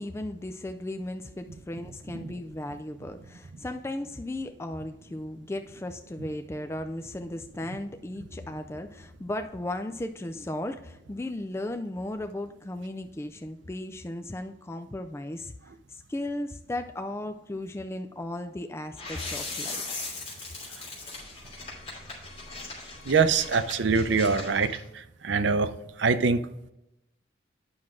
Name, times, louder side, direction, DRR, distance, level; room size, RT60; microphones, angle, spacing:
voice 1, 0.0-20.1, left 1 dB, 15° left, 7 dB, 0.3 m, -36 dB
sound 1, 19.0-24.8, left 3 dB, 35° left, 2.8 m, -39 dB
voice 2, 23.1-25.7 26.0-26.5, right 5 dB, 75° right, 12 dB, 0.6 m, -24 dB
9.5 x 6.0 x 3.7 m, 0.87 s
head